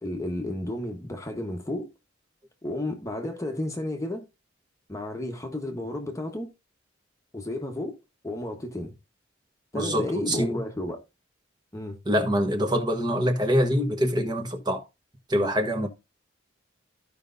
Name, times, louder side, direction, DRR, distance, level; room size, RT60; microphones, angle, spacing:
voice 1, 0.0-1.9 2.6-4.3 4.9-6.5 7.3-8.0 8.2-8.9 9.7-11.0 11.7-12.0, left 1 dB, 15° left, 1.1 m, -32 dB
voice 2, 9.7-10.6 12.0-14.8 15.3-15.9, equal, 20° right, 1.2 m, -25 dB
14.5 x 5.3 x 2.6 m
head